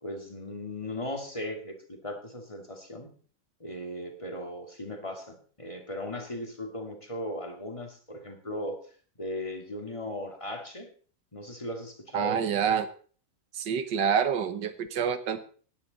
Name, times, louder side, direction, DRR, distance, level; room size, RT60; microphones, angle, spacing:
voice 1, 0.0-3.1 3.6-8.8 9.2-10.9 11.3-12.4, left 1 dB, 15° left, 3 dB, 2.3 m, -37 dB
voice 2, 12.1-12.9 13.5-15.4, right 7 dB, 75° right, 11 dB, 1.8 m, -27 dB
17.5 x 10.0 x 4.1 m, 0.42 s
omnidirectional pair, 1.9 m